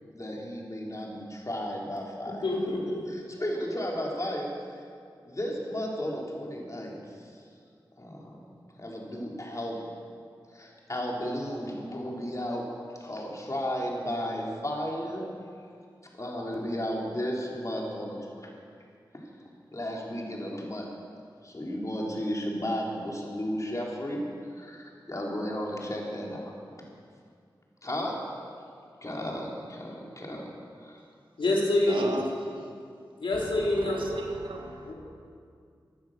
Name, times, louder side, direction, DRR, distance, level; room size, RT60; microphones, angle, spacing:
voice 1, 0.1-2.4 3.1-4.5 5.2-6.9 8.0-8.4 8.8-9.9 10.5-12.7 13.0-15.3 16.2-18.2 19.7-20.9 21.4-24.2 24.6-26.5 27.8-28.2 29.0-30.5 30.8-31.0, equal, 40° left, -2 dB, 3.9 m, -34 dB
voice 2, 2.2-3.0 31.4-32.0 33.2-34.0 34.9-35.0, left 2 dB, 85° left, -3 dB, 3.2 m, -26 dB
voice 3, 31.9-32.7 33.7-34.9, right 2 dB, 80° right, 2 dB, 2.0 m, -35 dB
16.5 x 10.5 x 6.7 m, 2.3 s
cardioid pair, 45°, 9 cm